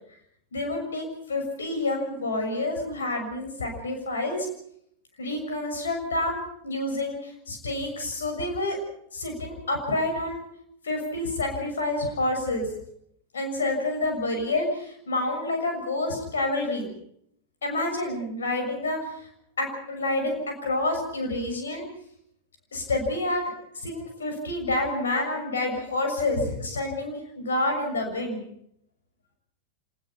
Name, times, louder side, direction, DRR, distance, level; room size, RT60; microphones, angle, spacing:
voice 1, 0.5-4.5 5.2-8.8 9.1-10.4 10.8-12.7 13.3-16.9 17.6-19.3 19.6-21.9 22.7-23.5 23.8-28.5, left 2 dB, 70° left, 3 dB, 6.7 m, -28 dB
26.5 x 20.0 x 5.8 m, 0.70 s
figure-of-eight pair, 90°, 0 cm